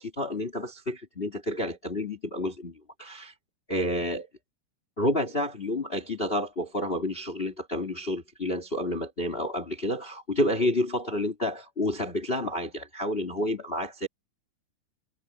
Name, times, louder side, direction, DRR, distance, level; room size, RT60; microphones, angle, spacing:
voice 1, 0.0-3.3 3.7-4.3 5.0-14.1, left 1 dB, 20° left, 3.1 m, -30 dB
omnidirectional pair, 3.6 m